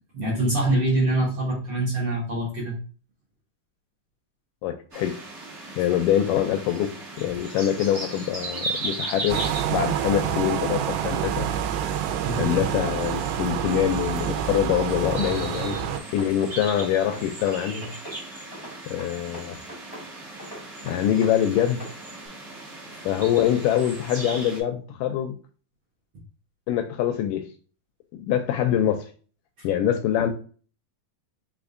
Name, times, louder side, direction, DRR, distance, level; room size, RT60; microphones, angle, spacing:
voice 1, 0.1-2.8 12.2-12.6, right 1 dB, 55° right, 1.6 m, -24 dB
voice 2, 4.6-5.1 5.8-9.4 9.7-11.5 12.4-15.8 16.1-17.9 18.9-19.6 20.8-21.8 23.1-25.3 26.7-27.5 28.1-29.0 29.6-30.3, left 10 dB, 80° left, 2.0 m, -24 dB
sound 1, 4.9-24.6, right 2 dB, 40° right, 0.9 m, -38 dB
sound 2, 9.3-16.0, right 9 dB, 85° right, 2.3 m, -27 dB
sound 3, 14.9-16.3 16.6-18.2 18.5-20.1 20.4-22.0, equal, 15° left, 0.7 m, -41 dB
5.1 x 3.6 x 2.5 m
omnidirectional pair, 4.1 m